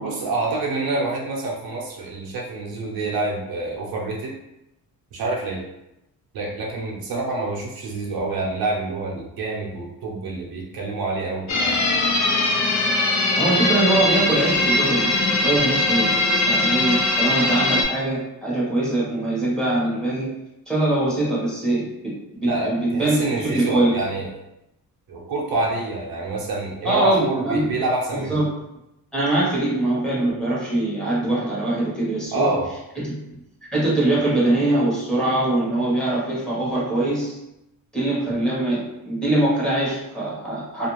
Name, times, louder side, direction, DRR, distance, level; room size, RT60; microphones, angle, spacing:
voice 1, 0.0-4.3 5.1-5.6 6.3-11.8 22.4-24.3 25.1-28.4 32.3-32.7, right 2 dB, 70° right, -3 dB, 0.7 m, -27 dB
sound 1, 11.5-17.8, left 2 dB, 50° left, 0.6 m, -21 dB
voice 2, 13.4-20.3 20.7-24.0 26.8-27.8 28.1-28.5 29.1-32.5 33.0-33.4 33.7-37.3 37.9-40.9, right 2 dB, ahead, -7 dB, 1.0 m, -23 dB
2.4 x 2.2 x 3.0 m, 0.88 s
cardioid pair, 120°, 37 cm